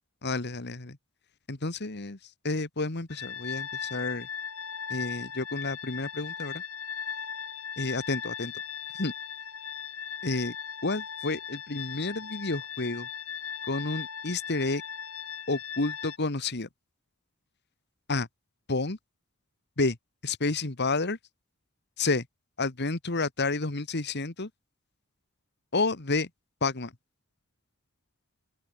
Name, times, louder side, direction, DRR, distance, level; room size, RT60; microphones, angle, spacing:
voice 1, 0.2-1.0 1.5-2.2 2.4-4.3 4.9-6.6 7.8-8.5 9.0-9.1 10.2-10.5 10.8-13.1 13.7-14.8 15.5-16.7 18.1-18.3 18.7-19.0 19.8-20.0 20.2-21.2 22.0-22.2 22.6-24.5 25.7-26.3 26.6-26.9, left 3 dB, 55° left, 1.8 m, -30 dB
sound 1, 3.1-16.2, left 8 dB, 85° left, 6.0 m, -38 dB
open air
head